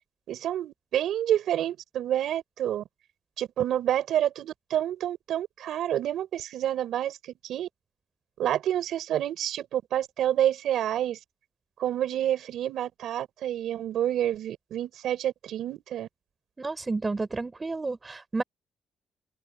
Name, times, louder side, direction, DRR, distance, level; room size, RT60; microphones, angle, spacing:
voice 1, 0.3-2.8 3.4-7.2 7.4-7.7 8.4-11.2 11.8-16.1, right 11 dB, 75° right, 4.7 m, -28 dB
voice 2, 16.6-18.4, right 3 dB, 25° right, 4.7 m, -31 dB
open air
cardioid pair, 90°, 0 cm